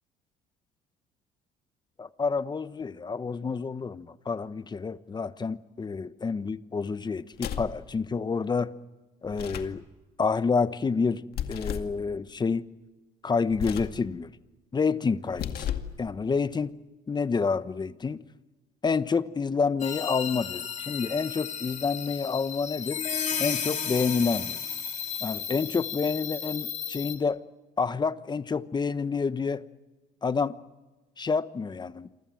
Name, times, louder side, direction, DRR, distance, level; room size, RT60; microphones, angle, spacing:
voice 1, 2.0-8.7 9.2-9.8 10.2-12.7 13.2-14.3 14.7-15.7 16.0-16.7 17.1-18.2 18.8-23.0 23.4-24.6 25.2-27.4 27.8-29.6 30.2-30.6 31.2-32.1, left 5 dB, 25° left, 1.1 m, -28 dB
sound 1, 7.3-7.8 9.3-9.8 11.3-12.0 13.5-14.0 15.3-16.0, left 9 dB, 65° left, 2.2 m, -34 dB
sound 2, 19.8-27.1, left 7 dB, 45° left, 3.9 m, -33 dB
28.0 x 24.5 x 7.8 m
cardioid pair, 110°, 17 cm